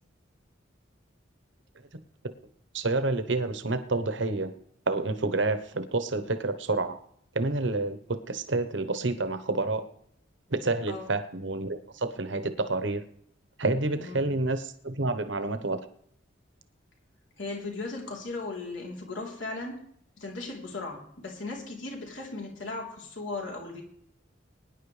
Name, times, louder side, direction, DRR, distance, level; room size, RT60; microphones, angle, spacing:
voice 1, 2.7-4.5 4.9-7.0 7.3-9.9 10.5-13.0 13.6-15.8, right 2 dB, 70° right, 10 dB, 1.0 m, -29 dB
voice 2, 14.0-14.3 17.4-19.8 20.2-23.8, left 3 dB, 80° left, -1 dB, 3.5 m, -37 dB
22.5 x 10.0 x 3.3 m, 0.68 s
head